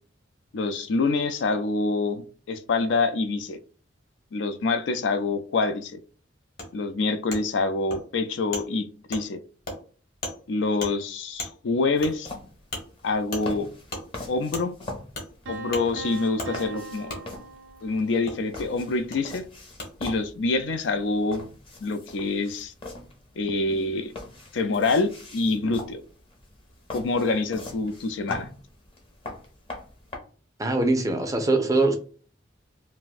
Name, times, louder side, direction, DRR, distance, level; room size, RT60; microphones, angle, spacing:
voice 1, 0.5-3.6 4.3-6.0 6.7-9.4 10.5-12.3 13.0-13.7 14.3-14.7 15.5-17.1 17.8-19.4 20.0-21.5 21.8-22.7 23.4-24.1 24.5-26.0 26.9-28.5, left 3 dB, 70° left, 0.4 m, -26 dB
Wood, 6.6-6.7 7.3-7.4 7.9-8.0 8.5-8.6 9.1-9.2 9.6-9.8 10.2-10.4 10.8-10.9 11.4-11.5 12.0-12.1 12.7-12.8 13.3-13.4 13.9-14.0 14.5-14.6 15.1-15.3 15.7-15.8 16.4-16.5 17.1-17.2 18.3-18.4 19.1-19.2 19.8-19.9, left 2 dB, 50° left, 1.1 m, -34 dB
sound 1, 12.0-30.2, left 2 dB, 30° left, 0.7 m, -42 dB
Piano, 15.5-18.3, right 3 dB, 80° right, 0.5 m, -40 dB
voice 2, 30.6-32.0, right 2 dB, 15° right, 0.4 m, -22 dB
2.5 x 2.1 x 3.9 m
head